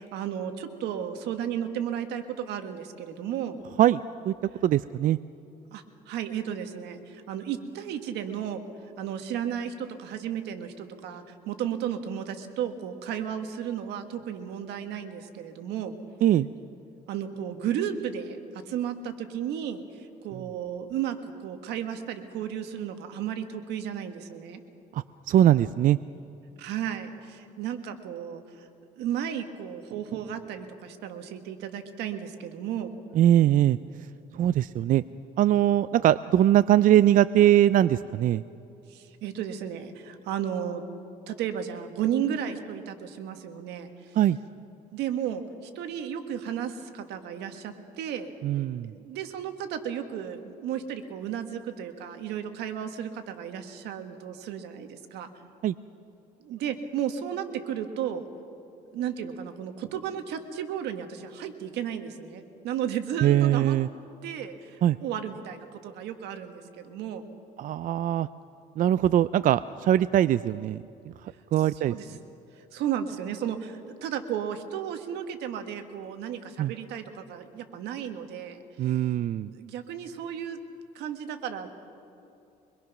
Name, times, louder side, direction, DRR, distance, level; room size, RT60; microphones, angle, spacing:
voice 1, 0.0-3.6 5.7-8.6 9.0-16.0 17.1-24.6 26.6-28.7 29.0-32.9 38.9-40.8 41.3-44.2 44.9-48.3 48.9-55.3 56.4-58.3 58.9-63.8 64.2-67.2 71.6-72.2 72.5-79.0 79.5-80.6 80.9-81.7, right 9 dB, 85° right, 7 dB, 1.7 m, -34 dB
voice 2, 3.8-4.3 4.6-5.2 16.2-16.5 24.9-26.0 33.1-33.8 34.3-35.0 35.4-38.4 44.2-44.4 48.4-48.9 55.6-55.7 63.2-63.9 64.8-65.0 67.6-68.3 68.8-71.9 76.6-76.7 78.8-79.5, right 12 dB, 55° right, 15 dB, 0.4 m, -22 dB
24.0 x 22.0 x 6.1 m, 2.7 s
cardioid pair, 110°, 17 cm